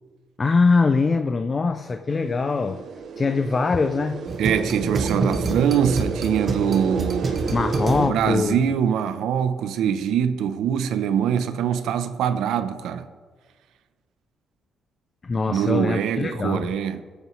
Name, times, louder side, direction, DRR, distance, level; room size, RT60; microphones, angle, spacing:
voice 1, 0.4-2.8 3.2-4.3 7.5-8.6 15.2-16.7, left 4 dB, 30° left, 0.4 m, -22 dB
sound 1, 2.1-8.1, right 5 dB, 55° right, 0.7 m, -31 dB
sound 2, 4.3-8.4, right 2 dB, 30° right, 1.2 m, -28 dB
voice 2, 4.4-7.4 8.0-13.1 15.5-17.0, right 8 dB, 85° right, 0.7 m, -23 dB
23.0 x 8.1 x 3.2 m
cardioid pair, 130°, 0 cm